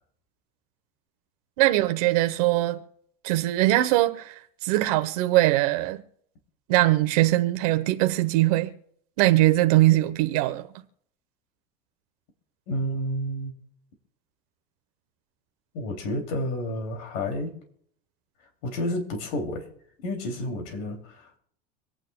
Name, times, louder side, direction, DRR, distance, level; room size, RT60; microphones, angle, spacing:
voice 1, 1.6-2.8 3.2-6.0 6.7-8.7 9.2-10.7, right 17 dB, 75° right, 1.0 m, -21 dB
voice 2, 12.7-13.5 15.7-17.5 18.6-19.7 20.0-21.3, left 1 dB, 65° left, 2.8 m, -30 dB
26.0 x 9.1 x 2.3 m
cardioid pair, 170°, 20 cm